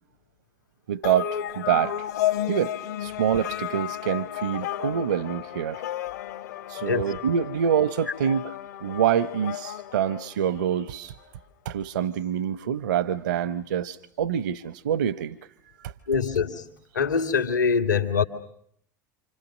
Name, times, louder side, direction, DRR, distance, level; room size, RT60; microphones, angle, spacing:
voice 1, 0.9-2.1 2.5-5.8 6.7-8.4 8.8-11.1 11.6-15.4 15.8-15.9, right 9 dB, 65° right, 1.0 m, -26 dB
sound 1, 1.0-10.8, left 12 dB, 65° left, 1.6 m, -33 dB
voice 2, 16.1-16.7 16.9-18.2, left 6 dB, 80° left, 2.4 m, -23 dB
29.0 x 26.5 x 6.5 m
figure-of-eight pair, 75°, 10 cm